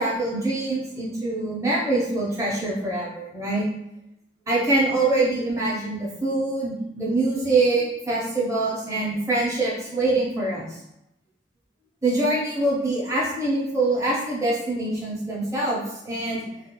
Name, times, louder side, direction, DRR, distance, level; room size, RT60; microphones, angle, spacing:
voice 1, 0.0-3.7 4.5-10.8 12.0-16.5, right 2 dB, 15° right, -6 dB, 0.7 m, -24 dB
2.4 x 2.4 x 2.9 m, 0.83 s
head